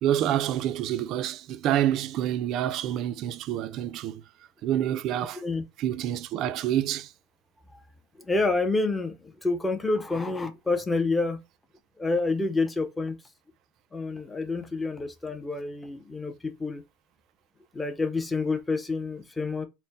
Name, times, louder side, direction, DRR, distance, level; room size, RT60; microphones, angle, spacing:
voice 1, 0.0-4.2 4.6-5.4 5.8-7.1, right 11 dB, 45° right, 0.4 m, -27 dB
voice 2, 5.3-5.6 7.7-7.8 8.2-11.4 12.0-13.2 13.9-16.8 17.7-19.7, left 3 dB, 10° left, 0.6 m, -28 dB
4.2 x 2.1 x 3.9 m
supercardioid pair, 145°, 0 cm